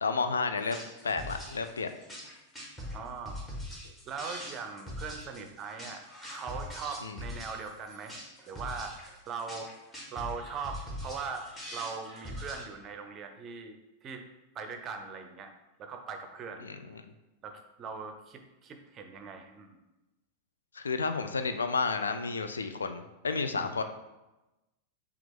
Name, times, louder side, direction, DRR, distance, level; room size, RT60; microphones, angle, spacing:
voice 1, 0.0-1.9 7.0-7.2 16.6-17.1 20.7-23.8, left 4 dB, 70° left, 8 dB, 0.3 m, -31 dB
sound 1, 0.6-12.6, left 1 dB, 10° left, 1.2 m, -42 dB
voice 2, 2.9-3.4 3.8-6.0 6.3-8.2 8.5-9.7 10.1-14.3 14.5-15.5 15.8-17.0 17.4-19.8 23.6-23.7, right 5 dB, 30° right, 6 dB, 0.6 m, -40 dB
5.8 x 2.4 x 3.4 m, 1.0 s
figure-of-eight pair, 90°, 0 cm